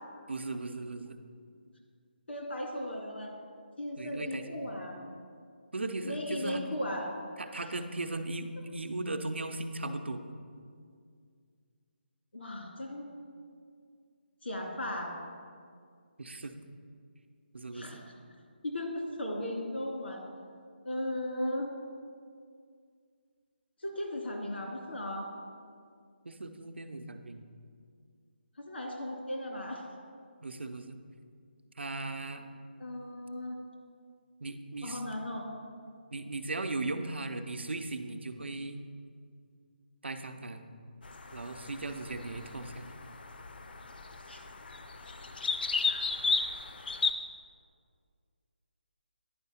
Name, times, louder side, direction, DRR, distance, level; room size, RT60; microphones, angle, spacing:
voice 1, 0.3-1.2 4.0-4.7 5.7-6.6 7.4-10.2 16.2-16.5 17.5-18.0 26.2-27.4 30.4-31.0 31.8-32.5 34.4-35.0 36.1-38.8 40.0-40.6 41.3-42.9, right 2 dB, 90° right, 7 dB, 0.7 m, -37 dB
voice 2, 2.3-3.3 3.8-5.0 6.0-7.1 12.3-13.1 14.4-15.1 17.7-18.0 18.6-20.2 20.8-21.7 23.8-25.3 28.6-29.8 32.8-33.6 34.8-35.5 44.3-44.4, left 1 dB, 80° left, 0 dB, 2.4 m, -36 dB
sound 1, 41.0-47.1, left 4 dB, 60° left, 0.6 m, -34 dB
10.5 x 4.8 x 5.7 m, 2.2 s
hypercardioid pair, 170°, 6 cm